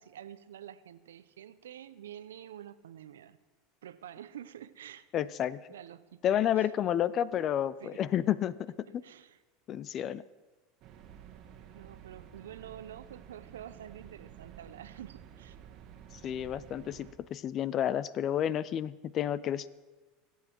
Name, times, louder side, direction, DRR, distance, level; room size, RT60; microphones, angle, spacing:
voice 1, 0.0-3.4 3.8-5.0 5.7-6.7 7.3-7.4 7.8-8.0 9.0-9.4 11.7-15.6, right 10 dB, 90° right, 14 dB, 0.6 m, -48 dB
voice 2, 5.1-5.6 6.2-9.0 9.7-10.2 16.1-19.7, left 10 dB, 45° left, 19 dB, 0.5 m, -30 dB
sound 1, 10.8-17.1, right 9 dB, 50° right, 1.4 m, -51 dB
23.0 x 8.3 x 4.5 m, 1.3 s
hypercardioid pair, 100°, 0 cm